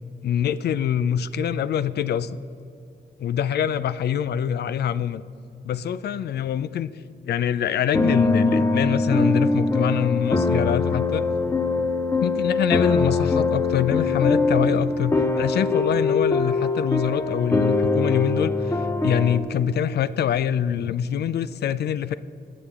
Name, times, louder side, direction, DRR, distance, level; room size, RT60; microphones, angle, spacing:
voice 1, 0.2-2.4 3.2-5.2 5.6-6.9 7.2-11.2 12.2-22.1, left 9 dB, 75° left, 16 dB, 0.4 m, -25 dB
sound 1, 7.9-19.4, left 3 dB, 15° left, 0.6 m, -22 dB
19.5 x 7.0 x 3.6 m, 2.6 s
wide cardioid pair, 110°, 17 cm